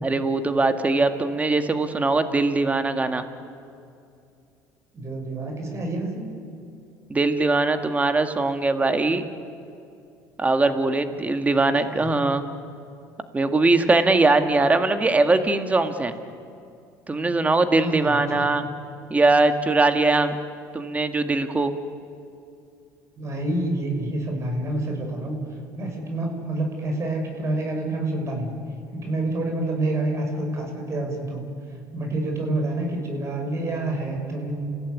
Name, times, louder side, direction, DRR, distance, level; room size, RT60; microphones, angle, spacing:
voice 1, 0.0-3.3 7.1-9.2 10.4-12.5 13.3-16.2 17.1-18.7 19.1-20.4 20.7-21.7, right 3 dB, 20° right, 8 dB, 1.9 m, -21 dB
voice 2, 4.9-6.3 11.9-12.2 17.8-18.5 23.2-25.4 25.8-28.5 28.9-31.4 31.9-34.7, right 2 dB, 35° right, 3 dB, 6.4 m, -28 dB
30.0 x 16.5 x 9.5 m, 2.5 s
supercardioid pair, 100°, 8 cm